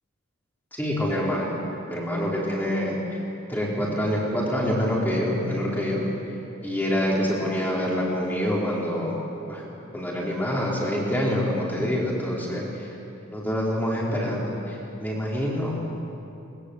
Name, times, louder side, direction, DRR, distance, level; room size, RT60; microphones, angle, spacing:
voice 1, 0.7-1.6 1.9-3.2 3.5-6.1 6.6-9.2 9.5-9.6 9.9-12.9 13.3-15.8, equal, 10° left, -5 dB, 4.7 m, -26 dB
22.5 x 22.0 x 8.3 m, 2.9 s
head